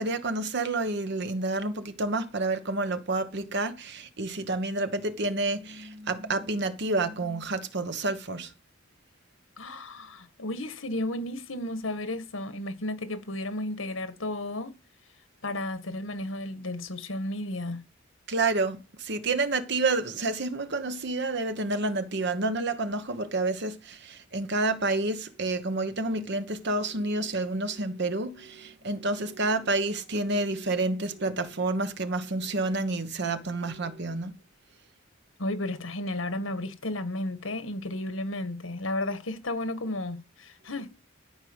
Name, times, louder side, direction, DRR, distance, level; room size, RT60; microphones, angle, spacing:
voice 1, 0.0-8.5 18.3-34.3, right 2 dB, 60° right, 1.2 m, -29 dB
voice 2, 9.6-14.8 15.4-17.8 35.4-40.9, left 1 dB, 85° left, 1.8 m, -33 dB
13.0 x 5.1 x 8.0 m
head